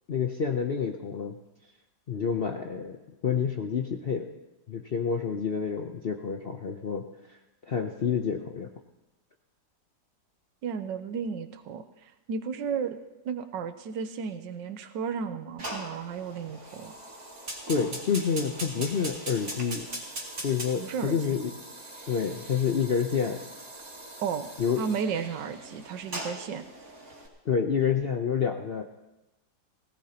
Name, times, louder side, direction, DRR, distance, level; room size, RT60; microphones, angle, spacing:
voice 1, 0.1-1.4 2.1-4.3 4.7-7.4 7.7-8.7 17.7-19.9 20.4-21.5 22.1-23.4 24.6-24.8 27.4-28.8, left 6 dB, 55° left, 3 dB, 0.6 m, -28 dB
voice 2, 10.6-13.0 13.2-16.9 20.8-21.2 24.2-24.5 24.8-26.6, right 6 dB, 80° right, 9 dB, 1.5 m, -33 dB
Fire, 15.6-27.3, right 1 dB, 50° right, 3.0 m, -41 dB
20.0 x 17.0 x 2.9 m, 0.99 s
omnidirectional pair, 2.0 m